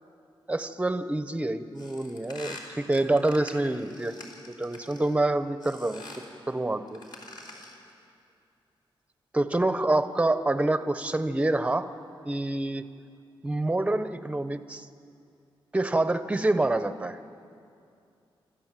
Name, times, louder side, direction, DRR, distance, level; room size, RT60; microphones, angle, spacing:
voice 1, 0.5-4.1 4.5-6.0 6.5-7.0 9.3-11.9 12.2-12.8 13.4-14.9 15.7-17.2, right 2 dB, 15° right, 11 dB, 0.8 m, -27 dB
sound 1, 1.8-5.2 5.6-6.3 6.9-7.9, left 2 dB, 55° left, 3.5 m, -45 dB
27.5 x 13.0 x 7.5 m, 2.5 s
wide cardioid pair, 125°, 9 cm